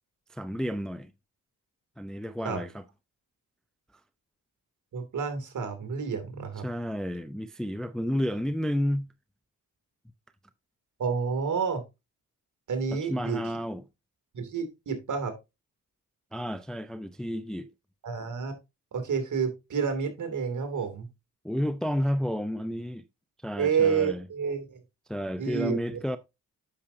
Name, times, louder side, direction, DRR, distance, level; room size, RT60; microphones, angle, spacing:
voice 1, 0.3-1.1 2.0-2.8 6.6-9.1 12.9-13.8 16.3-17.7 21.4-23.0 23.4-24.3 25.1-26.2, equal, ahead, 0.5 m, -31 dB
voice 2, 4.9-6.6 11.0-11.8 12.7-13.4 14.3-15.3 18.0-18.6 18.9-21.1 23.6-24.8 25.4-26.0, right 6 dB, 55° right, 2.6 m, -29 dB
8.5 x 6.4 x 2.7 m
cardioid pair, 70°, 35 cm